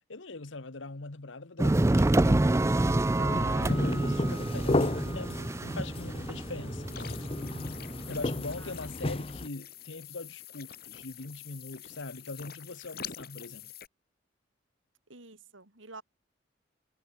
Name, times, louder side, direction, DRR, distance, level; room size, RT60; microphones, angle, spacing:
voice 1, 0.1-2.4 3.1-7.3 8.1-13.7, left 3 dB, 75° left, 1.4 m, -41 dB
sound 1, 1.6-8.5, right 2 dB, 15° right, 0.4 m, -28 dB
voice 2, 3.2-4.4 8.6-8.7 15.1-16.0, right 3 dB, 80° right, 3.7 m, -48 dB
sound 2, 3.6-9.5, left 2 dB, 30° left, 0.9 m, -33 dB
sound 3, 6.9-13.9, left 9 dB, 50° left, 6.0 m, -46 dB
head